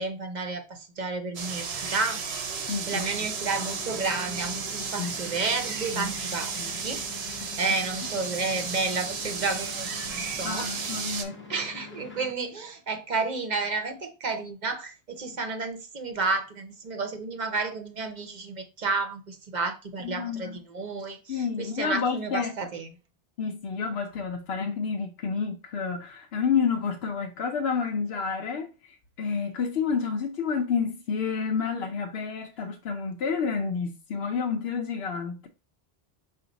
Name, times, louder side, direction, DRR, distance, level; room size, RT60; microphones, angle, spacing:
voice 1, 0.0-2.2 2.6-6.5 6.8-7.0 7.6-10.9 11.5-22.9, right 4 dB, 50° right, 0.8 m, -31 dB
sound 1, 1.3-11.2, right 5 dB, 90° right, 1.0 m, -34 dB
voice 2, 2.7-3.0 4.8-5.1 5.9-6.1 6.5-6.8 10.4-11.4 20.0-20.6 21.3-22.5 23.4-35.5, left 6 dB, 75° left, 0.9 m, -29 dB
sound 2, 3.4-12.3, left 5 dB, 15° left, 0.7 m, -45 dB
5.1 x 2.5 x 3.9 m
omnidirectional pair, 1.0 m